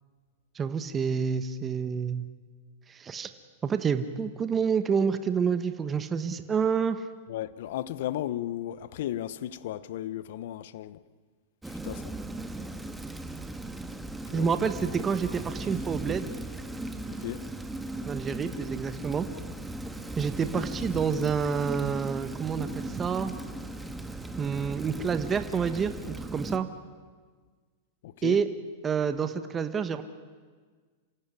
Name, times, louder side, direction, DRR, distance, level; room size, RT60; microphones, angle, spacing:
voice 1, 0.5-2.2 2.9-3.3 3.6-7.0 14.3-16.3 18.1-19.3 20.2-23.3 24.4-25.9 26.3-26.7 28.2-28.5 28.8-30.0, right 6 dB, 20° right, 1.2 m, -28 dB
voice 2, 7.3-11.0 11.6-12.2 14.2-14.5 17.1-17.5 28.0-28.4, left 12 dB, 70° left, 0.9 m, -35 dB
Rain, 11.6-26.6, right 1 dB, 5° right, 1.7 m, -37 dB
28.0 x 15.5 x 9.7 m
hypercardioid pair, 120°, 0 cm